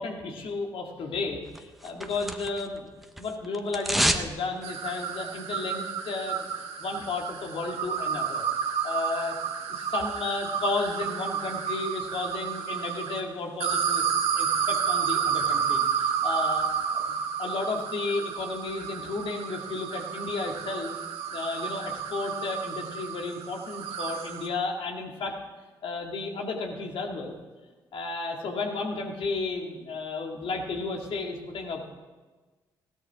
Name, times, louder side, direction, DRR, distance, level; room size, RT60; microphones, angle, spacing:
voice 1, 0.0-2.9 3.2-6.5 6.8-8.5 8.8-9.4 9.7-14.0 14.4-16.7 16.9-17.0 17.4-20.9 21.3-25.4 25.8-27.4 27.9-31.9, left 3 dB, 65° left, 1 dB, 2.3 m, -33 dB
sound 1, 1.5-2.8 3.0-4.3 4.6-4.7, equal, ahead, 1.2 m, -28 dB
sound 2, 4.6-13.2 13.6-24.5, right 7 dB, 75° right, 1.2 m, -31 dB
16.5 x 12.5 x 3.7 m, 1.3 s
hypercardioid pair, 45°, 10 cm